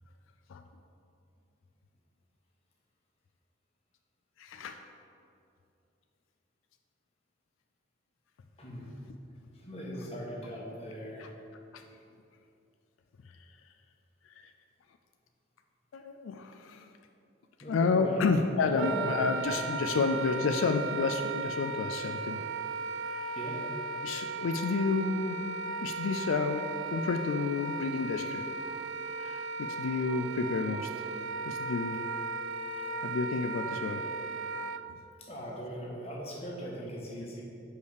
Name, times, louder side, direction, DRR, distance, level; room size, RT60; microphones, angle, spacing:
voice 1, 4.4-4.8 11.2-11.3 11.7-11.8 13.4-13.5 14.4-14.5 15.9-16.9 17.7-22.4 23.1-23.3 24.0-25.4 25.8-28.4 29.2-30.9 31.5-32.0 33.0-34.1, left 4 dB, 85° left, 6 dB, 0.4 m, -30 dB
voice 2, 8.6-9.0 9.5-11.3 17.6-18.2 18.6-19.2 19.4-19.9 23.3-23.6 35.2-37.4, equal, 30° left, -3 dB, 1.3 m, -40 dB
Wind instrument woodwind instrument, 18.7-34.8, right 4 dB, 80° right, 0.3 m, -36 dB
5.4 x 4.9 x 6.5 m, 2.6 s
head